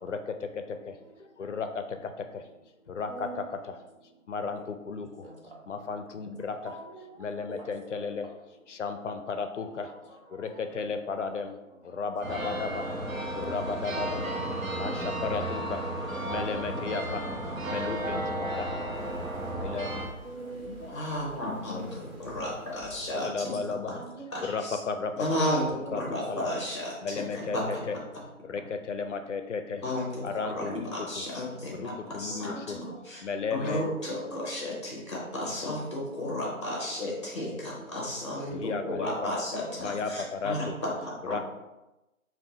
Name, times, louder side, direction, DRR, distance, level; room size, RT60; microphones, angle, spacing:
voice 1, 0.0-0.9 1.2-2.5 2.9-3.8 4.3-5.3 5.7-6.7 7.2-8.3 8.7-10.0 10.3-11.6 11.8-12.9 13.3-14.3 14.8-15.8 16.2-17.3 17.7-18.7 19.6-19.9 23.2-23.9 24.4-25.1 25.9-26.6 27.0-28.0 28.4-29.8 30.2-31.2 31.7-32.8 33.2-33.8 38.5-39.3 39.8-40.8 41.3-41.4, left 5 dB, 60° left, 7 dB, 0.5 m, -34 dB
voice 2, 3.1-3.4 4.6-4.7 5.2-5.4 6.7-7.7 9.7-10.6 13.6-13.7 14.7-14.8 17.8-18.0 20.2-20.9 23.2-23.6 23.9-24.4 25.9-26.0 32.3-32.8 34.1-34.5 36.6-36.7 39.1-39.8 40.5-40.7, right 3 dB, 40° right, -1 dB, 0.8 m, -44 dB
sound 1, 12.2-20.1, right 1 dB, 70° right, 1.1 m, -33 dB
sound 2, 18.9-23.3, equal, 20° right, 1.1 m, -49 dB
voice 3, 20.6-23.6 24.3-24.8 25.2-27.8 29.8-33.2 33.5-41.4, left 1 dB, 20° left, -3 dB, 0.8 m, -33 dB
3.6 x 2.5 x 4.1 m, 1.0 s
hypercardioid pair, 170°, 42 cm